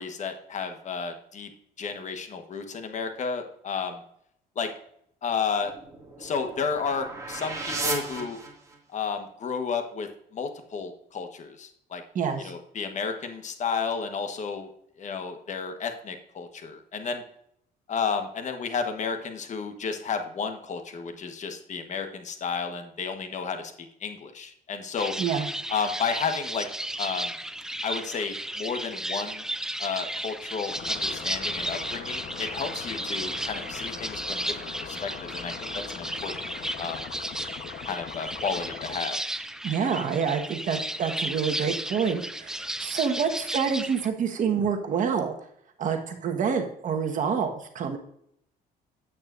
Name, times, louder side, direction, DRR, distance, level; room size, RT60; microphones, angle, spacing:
voice 1, 0.0-1.5 1.8-4.0 4.5-4.7 5.2-5.7 6.2-8.4 8.9-12.0 12.4-14.7 15.0-17.2 17.9-25.1 25.7-26.7 27.0-27.3 27.8-29.4 29.8-36.5 36.8-37.0 37.9-39.2, left 5 dB, 45° left, 6 dB, 1.3 m, -32 dB
sound 1, 5.6-9.0, right 3 dB, 20° right, 2.2 m, -35 dB
voice 2, 12.1-12.5 25.2-25.5 39.6-45.3 45.8-48.0, right 6 dB, 50° right, 4 dB, 1.4 m, -27 dB
sound 2, 25.0-44.1, right 1 dB, 5° right, 0.4 m, -34 dB
sound 3, 30.7-39.0, left 7 dB, 60° left, 1.1 m, -40 dB
9.4 x 8.5 x 2.6 m, 0.70 s
cardioid pair, 110°, 17 cm